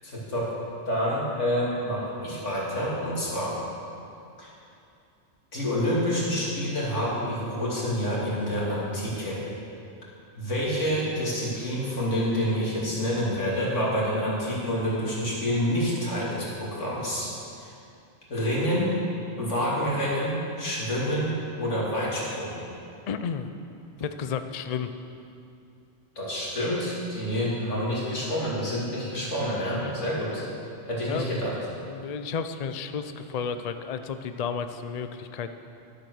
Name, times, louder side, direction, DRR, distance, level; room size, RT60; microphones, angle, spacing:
voice 1, 0.0-0.5 0.9-3.6 4.4-4.5 5.5-9.5 10.3-17.3 17.6-17.7 18.3-19.0 19.4-22.6 26.2-30.4 30.8-31.5, equal, 75° left, -6 dB, 3.1 m, -28 dB
voice 2, 23.1-23.5 24.0-24.9 29.7-29.9 31.1-31.3 31.9-35.5, left 6 dB, 55° left, 9 dB, 0.4 m, -32 dB
12.0 x 8.1 x 6.4 m, 2.6 s
omnidirectional pair, 1.3 m